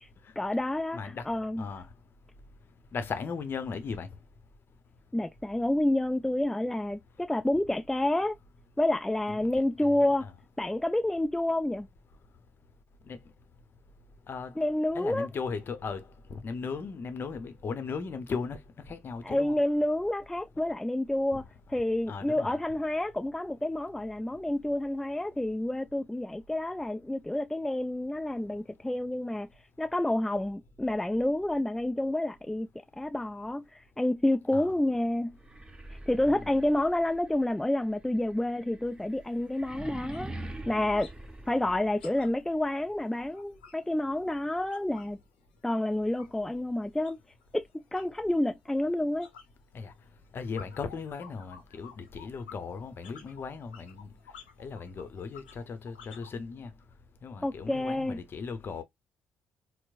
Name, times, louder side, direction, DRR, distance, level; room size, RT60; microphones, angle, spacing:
voice 1, 0.4-1.6 5.1-8.3 8.8-10.3 10.6-11.9 14.6-15.3 19.2-21.4 21.7-29.5 29.8-32.7 33.0-35.4 36.1-40.3 40.7-41.1 41.5-45.2 45.6-47.2 47.5-49.3 57.4-58.2, left 1 dB, 5° left, 0.4 m, -29 dB
voice 2, 0.9-1.3 1.6-1.9 2.9-4.1 9.3-9.5 10.2-10.3 13.1-13.2 14.3-14.5 14.9-16.0 16.3-18.6 18.9-19.6 21.3-21.5 22.1-22.6 34.5-34.7 36.3-36.6 49.7-49.9 50.3-54.1 54.6-56.7 57.2-58.8, left 5 dB, 45° left, 0.7 m, -37 dB
sound 1, 35.4-42.3, right 1 dB, 15° right, 0.8 m, -44 dB
sound 2, 38.9-39.0 39.3-39.5 39.8-41.2 41.4-45.2 45.5-56.4, left 7 dB, 90° left, 0.7 m, -53 dB
4.5 x 2.0 x 2.4 m
hypercardioid pair, 45°, 5 cm